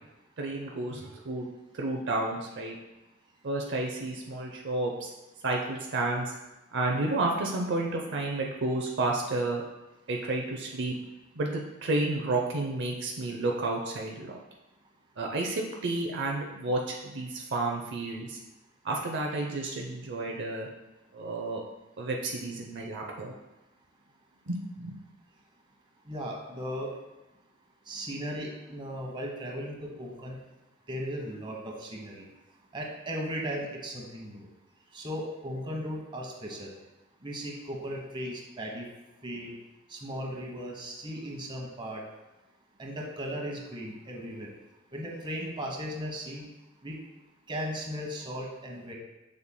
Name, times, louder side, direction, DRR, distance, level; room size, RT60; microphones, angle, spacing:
voice 1, 0.4-1.5 1.7-2.8 3.4-5.1 5.4-6.3 6.7-9.6 10.1-10.9 11.4-14.4 15.2-18.4 18.8-20.7 21.1-21.6 22.0-23.3 24.5-25.0, right 2 dB, 60° right, 0 dB, 0.6 m, -31 dB
voice 2, 26.1-26.9 27.9-30.4 30.9-32.3 32.7-34.5 34.9-36.7 37.2-38.8 39.2-39.5 39.9-42.0 42.8-44.5 44.9-46.4 46.8-47.0 47.5-48.9, equal, 25° right, -1 dB, 1.1 m, -37 dB
7.0 x 6.5 x 2.2 m, 1.0 s
head